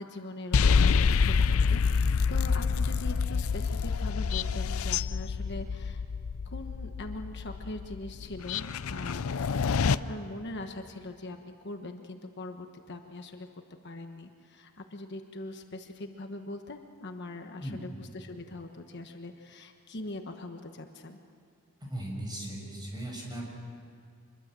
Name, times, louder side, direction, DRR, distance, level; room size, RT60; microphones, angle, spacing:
voice 1, 0.0-6.0 6.5-13.5 13.8-21.2, left 2 dB, 50° left, 5 dB, 1.3 m, -41 dB
sound 1, 0.5-10.0, left 5 dB, 70° left, 0.5 m, -27 dB
voice 2, 21.8-23.5, right 1 dB, 20° right, -1 dB, 6.2 m, -37 dB
25.5 x 22.0 x 7.7 m, 2.4 s
head